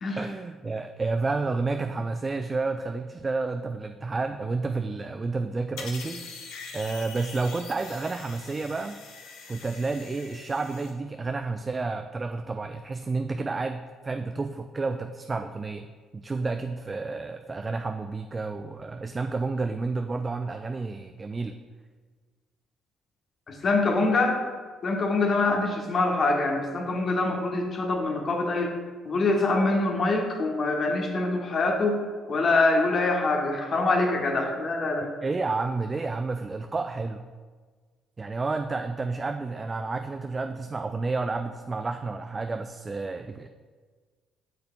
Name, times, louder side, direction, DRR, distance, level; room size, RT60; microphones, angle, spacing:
voice 1, 0.2-6.4 6.7-9.0 9.5-15.9 16.1-21.6 35.2-37.3 38.2-43.5, right 3 dB, 30° right, 7 dB, 0.3 m, -30 dB
sound 1, 5.8-10.9, left 5 dB, 70° left, 0.8 m, -43 dB
voice 2, 23.5-24.4 24.8-28.7 29.0-32.0 32.3-35.1, left 2 dB, 50° left, 2 dB, 1.1 m, -24 dB
8.0 x 6.6 x 2.3 m, 1.5 s
hypercardioid pair, 50°, 0 cm